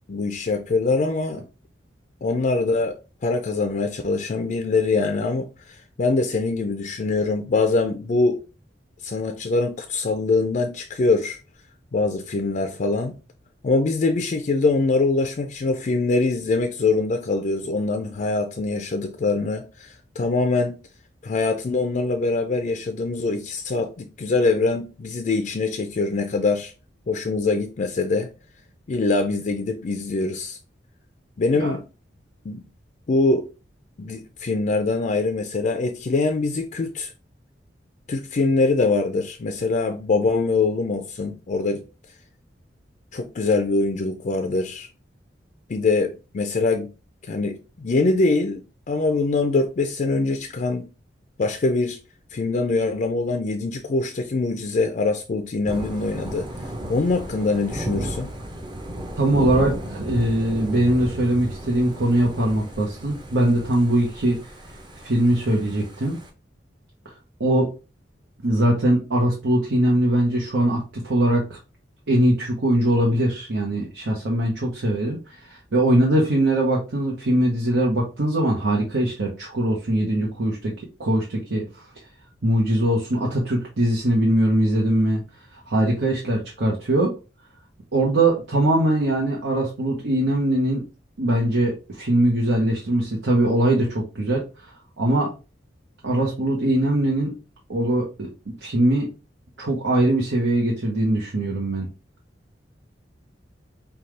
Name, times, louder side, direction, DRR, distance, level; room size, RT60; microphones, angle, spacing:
voice 1, 0.0-1.4 2.2-8.4 9.0-11.4 11.9-13.1 13.6-20.8 21.2-26.7 27.1-28.3 28.9-30.6 31.4-31.8 32.4-32.7 33.1-33.5 34.0-37.1 38.1-41.8 43.1-44.9 45.7-46.9 47.2-50.9 51.4-52.0 52.3-58.3, left 3 dB, 45° left, 0.4 m, -23 dB
Thunder / Rain, 55.7-66.3, right 1 dB, 25° right, 0.6 m, -34 dB
voice 2, 59.1-64.4 65.0-66.2 67.0-67.7 68.4-71.6 72.1-81.9 82.4-85.2 85.5-87.1 87.9-90.8 91.2-95.3 96.0-97.3 97.7-99.1 99.6-101.9, right 1 dB, 90° right, 1.0 m, -21 dB
5.5 x 2.3 x 3.2 m
head